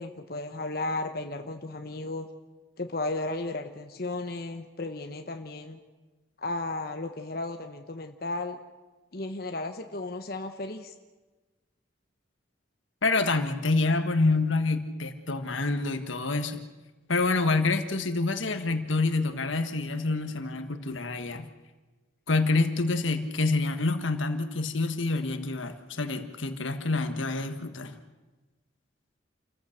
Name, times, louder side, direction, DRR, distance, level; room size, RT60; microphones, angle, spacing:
voice 1, 0.0-2.3 2.8-5.8 6.4-8.6 9.1-10.9, left 2 dB, 50° left, 6 dB, 1.1 m, -34 dB
voice 2, 13.0-16.6 17.1-21.5 22.3-28.0, left 3 dB, 85° left, 8 dB, 1.5 m, -27 dB
28.5 x 14.5 x 6.6 m, 1.2 s
head